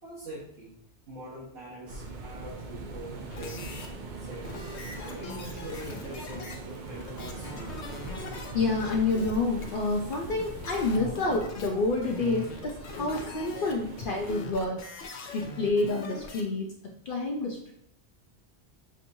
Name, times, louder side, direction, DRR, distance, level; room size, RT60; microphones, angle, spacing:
voice 1, 0.0-0.7 1.1-3.7 4.2-4.6 5.0-7.7, right 1 dB, 70° right, -9 dB, 1.5 m, -43 dB
sound 1, 1.9-14.4, right 3 dB, 55° right, 0.6 m, -41 dB
sound 2, 3.3-3.9 4.4-16.4, left 3 dB, 85° left, 1.0 m, -42 dB
voice 2, 8.2-14.8 15.3-16.7 17.1-17.7, left 3 dB, 60° left, 0 dB, 0.7 m, -28 dB
6.1 x 2.9 x 2.6 m, 0.71 s
omnidirectional pair, 1.1 m